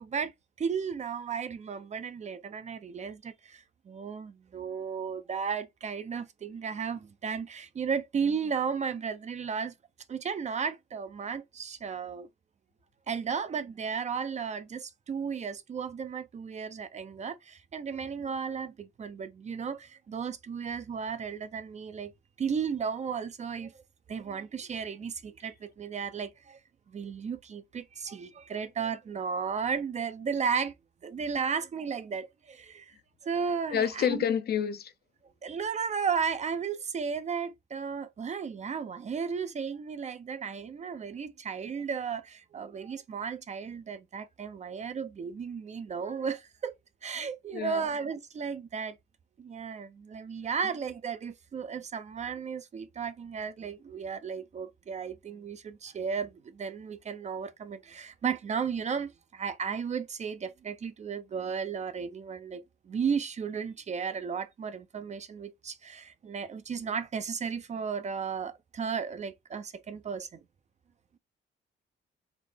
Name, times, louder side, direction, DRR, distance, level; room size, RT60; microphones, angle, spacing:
voice 1, 0.0-9.7 10.1-12.3 13.1-22.1 22.4-23.8 24.1-26.6 26.9-30.7 31.0-33.0 33.2-34.2 35.4-46.7 47.0-49.0 49.4-70.4, right 6 dB, 35° right, 0.4 m, -34 dB
voice 2, 33.7-34.9 47.5-47.9, left 8 dB, 55° left, 0.6 m, -28 dB
4.0 x 2.0 x 3.3 m
cardioid pair, 90°, 20 cm